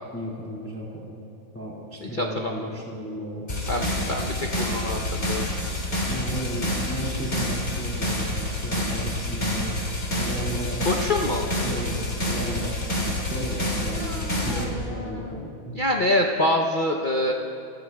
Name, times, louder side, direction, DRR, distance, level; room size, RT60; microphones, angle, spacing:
voice 1, 0.1-1.2 1.5-3.5 6.1-9.8 10.1-10.9 11.2-11.4 11.6-15.8, equal, 5° left, -4 dB, 2.1 m, -34 dB
voice 2, 2.0-2.7 3.7-5.5 10.9-11.5 13.9-15.4 15.7-17.3, left 1 dB, 75° left, 1 dB, 0.4 m, -26 dB
sound 1, 3.5-14.6, left 1 dB, 25° left, 2.6 m, -28 dB
26.0 x 17.0 x 2.4 m, 2.6 s
omnidirectional pair, 2.2 m